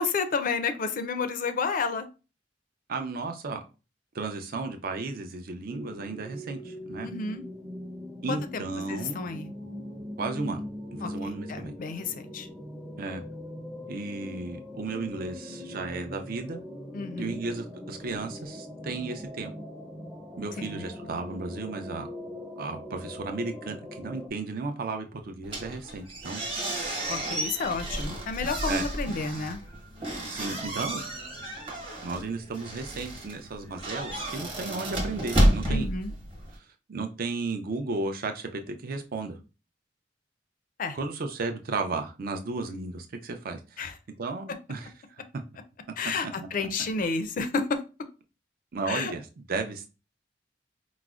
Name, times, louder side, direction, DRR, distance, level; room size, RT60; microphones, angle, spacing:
voice 1, 0.0-2.1 7.0-7.4 8.3-8.6 8.9-9.5 11.0-12.5 16.9-17.4 20.6-20.8 27.1-29.6 35.7-36.1 40.8-41.0 43.8-43.9 46.0-47.8 48.9-49.1, left 4 dB, 50° left, 0.4 m, -31 dB
voice 2, 2.9-3.6 4.1-7.1 8.2-9.2 10.2-10.6 11.0-11.7 13.0-13.2 13.9-16.6 17.2-19.5 20.4-22.1 22.6-26.4 28.6-28.9 30.3-31.0 32.0-35.9 36.5-39.4 40.9-43.9 44.2-44.9 46.0-46.3 48.7-49.9, right 3 dB, 55° right, 0.4 m, -34 dB
sound 1, 5.7-24.3, left 1 dB, 5° right, 0.5 m, -41 dB
sound 2, 25.4-36.6, right 1 dB, 30° right, 1.0 m, -31 dB
4.8 x 2.0 x 2.3 m
head